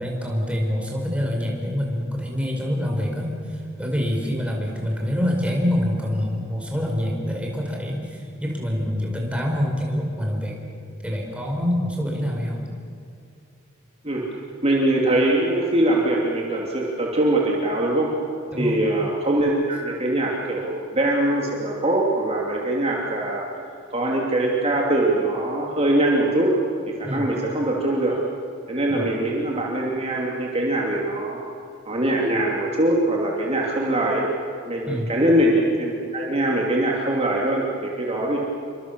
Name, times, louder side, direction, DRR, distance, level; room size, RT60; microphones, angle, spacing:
voice 1, 0.0-10.7 11.0-12.6 18.5-18.8 27.0-27.3 28.9-29.1 34.9-35.1, equal, 5° right, 0 dB, 5.0 m, -26 dB
voice 2, 14.6-18.1 18.6-23.5 23.9-26.6 26.9-28.2 28.7-31.4 31.9-34.3 34.7-38.4, right 1 dB, 30° right, -3 dB, 2.9 m, -22 dB
28.0 x 25.0 x 7.0 m, 2.5 s
head